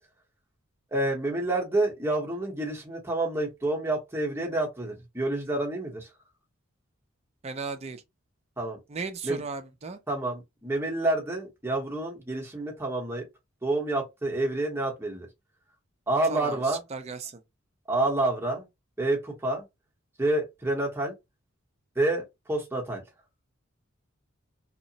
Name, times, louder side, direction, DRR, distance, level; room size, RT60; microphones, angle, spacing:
voice 1, 0.9-6.1 8.6-8.8 9.2-9.4 10.1-13.2 13.6-15.3 16.1-16.8 17.9-18.7 19.0-19.7 20.2-21.1 22.0-23.0, right 2 dB, 10° right, 0.8 m, -28 dB
voice 2, 7.4-8.0 8.9-10.0 16.3-17.4, right 4 dB, 30° right, 0.4 m, -36 dB
2.8 x 2.0 x 2.6 m
head